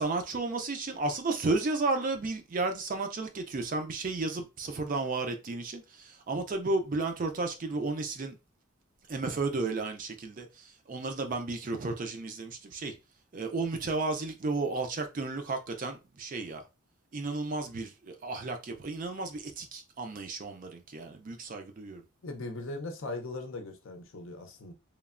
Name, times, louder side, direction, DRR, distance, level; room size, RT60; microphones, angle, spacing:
voice 1, 0.0-8.4 9.1-12.9 13.3-16.6 17.1-22.0, right 3 dB, 40° right, 0.4 m, -33 dB
voice 2, 22.2-24.7, left 2 dB, 60° left, 0.5 m, -39 dB
3.0 x 2.1 x 2.4 m
head